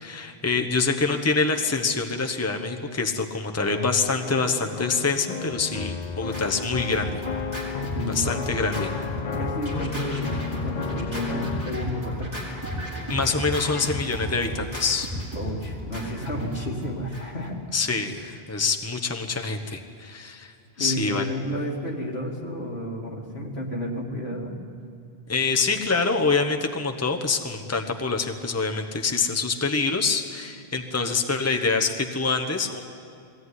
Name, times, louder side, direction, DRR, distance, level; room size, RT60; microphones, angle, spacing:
voice 1, 0.0-7.2 8.1-8.9 13.1-15.1 17.7-20.5 20.8-21.3 25.3-32.8, left 4 dB, 15° left, 4 dB, 1.1 m, -25 dB
sound 1, 3.8-11.7, left 6 dB, 45° left, 0.7 m, -33 dB
Scratching (performance technique), 5.4-17.5, equal, 15° right, 4.7 m, -34 dB
voice 2, 7.9-8.7 9.4-10.4 10.6-12.3 15.3-17.6 20.8-24.6, equal, 75° left, -1 dB, 3.0 m, -31 dB
21.5 x 17.0 x 9.7 m, 2.6 s
omnidirectional pair, 1.1 m